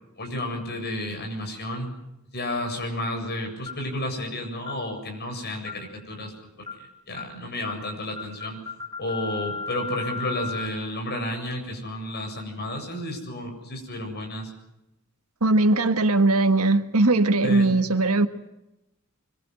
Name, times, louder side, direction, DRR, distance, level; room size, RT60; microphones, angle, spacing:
voice 1, 0.2-1.9 2.3-6.3 6.8-8.6 9.0-14.5 17.4-17.7, left 1 dB, 50° left, 3 dB, 7.8 m, -32 dB
sound 1, 3.7-3.9 4.7-4.9 5.7-5.9 6.7-6.9 7.2-7.4 7.7-7.9 8.2-10.7, left 4 dB, 20° left, 3.3 m, -35 dB
voice 2, 15.4-18.3, right 2 dB, 80° right, 8 dB, 1.7 m, -20 dB
25.0 x 23.0 x 8.0 m, 0.91 s
head